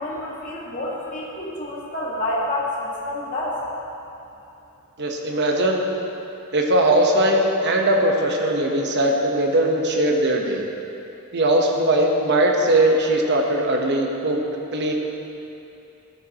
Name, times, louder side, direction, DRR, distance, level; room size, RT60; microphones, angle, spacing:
voice 1, 0.0-3.6, left 1 dB, 35° left, -6 dB, 1.7 m, -28 dB
voice 2, 5.0-5.8 6.5-10.6 11.3-14.4 14.7-14.9, right 1 dB, 50° right, 1 dB, 1.1 m, -20 dB
14.0 x 9.1 x 3.0 m, 2.8 s
head